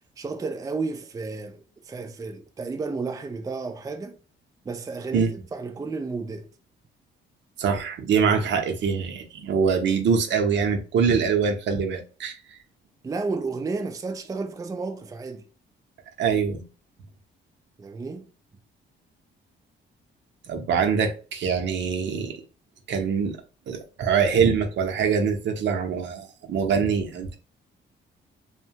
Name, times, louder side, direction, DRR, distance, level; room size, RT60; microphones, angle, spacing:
voice 1, 0.2-4.2 4.6-6.5 13.0-15.5 17.8-18.3, right 4 dB, 15° right, 0.4 m, -32 dB
voice 2, 7.6-12.6 16.2-16.6 20.5-22.4 22.9-23.4 23.7-27.4, right 6 dB, 65° right, 0.7 m, -24 dB
2.7 x 2.1 x 2.7 m
cardioid pair, 90°, 20 cm